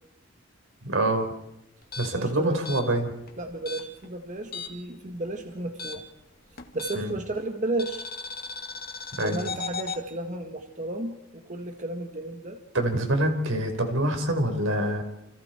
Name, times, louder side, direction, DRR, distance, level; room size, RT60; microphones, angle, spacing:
voice 1, 0.8-1.3 2.0-3.1 6.9-7.1 9.2-9.4 12.7-15.0, right 1 dB, 80° right, 5 dB, 4.6 m, -25 dB
sound 1, 1.8-4.9 5.2-7.3 7.8-10.0, left 4 dB, 50° left, 2.4 m, -37 dB
voice 2, 2.1-2.6 3.4-6.0 6.7-8.0 9.2-12.6, right 2 dB, 40° right, 4 dB, 1.8 m, -33 dB
29.5 x 29.0 x 4.6 m, 0.89 s
head